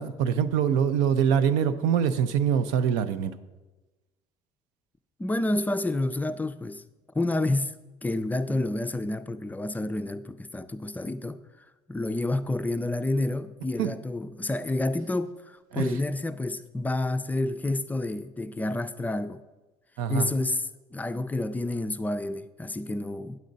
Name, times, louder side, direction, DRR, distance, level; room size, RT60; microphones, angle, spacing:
voice 1, 0.0-3.3 13.8-13.9 15.7-15.9 20.0-20.3, right 8 dB, 85° right, 0.5 m, -24 dB
voice 2, 5.2-6.8 7.1-11.4 11.9-19.4 20.1-23.4, left 2 dB, 10° left, 0.3 m, -29 dB
9.4 x 7.3 x 3.9 m
cardioid pair, 110°, 13 cm